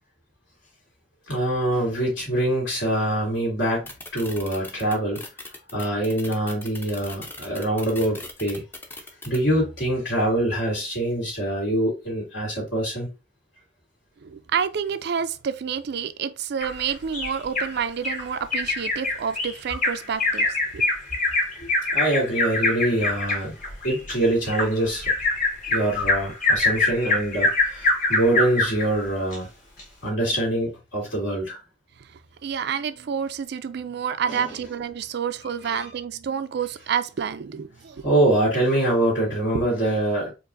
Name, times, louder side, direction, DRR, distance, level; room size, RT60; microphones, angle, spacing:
voice 1, 1.3-5.2 5.7-8.6 9.2-13.1 21.6-23.6 23.8-25.1 25.7-29.5 30.0-31.6 34.3-34.5 35.7-35.9 38.0-40.3, right 1 dB, 70° left, 2.2 m, -24 dB
sound 1, 3.9-9.4, left 2 dB, 10° left, 0.5 m, -39 dB
voice 2, 14.2-20.8 32.4-38.0 39.5-39.7, right 7 dB, 60° right, 0.4 m, -29 dB
Bird vocalization bird call bird song, 16.6-17.7 18.0-18.2 18.5-28.9 29.3-29.4 29.8-29.9, left 2 dB, 45° left, 1.4 m, -24 dB
4.5 x 2.5 x 2.6 m
head